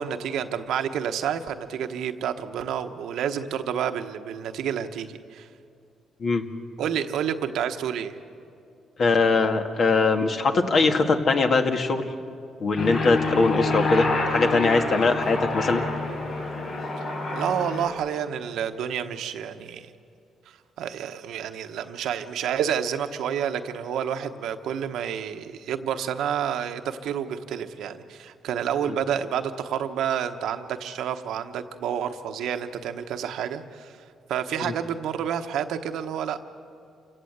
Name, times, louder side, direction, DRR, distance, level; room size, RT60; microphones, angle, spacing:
voice 1, 0.0-5.5 6.8-8.1 13.3-13.4 17.3-19.9 20.8-33.9 34.3-36.4, right 8 dB, 80° right, 7 dB, 1.1 m, -29 dB
voice 2, 9.0-12.1 12.6-15.8 34.6-34.7, left 3 dB, 50° left, 5 dB, 1.9 m, -21 dB
Aircraft, 12.8-17.9, left 2 dB, 75° left, 4.5 m, -27 dB
28.0 x 17.0 x 8.1 m, 2.5 s
cardioid pair, 90°, 0 cm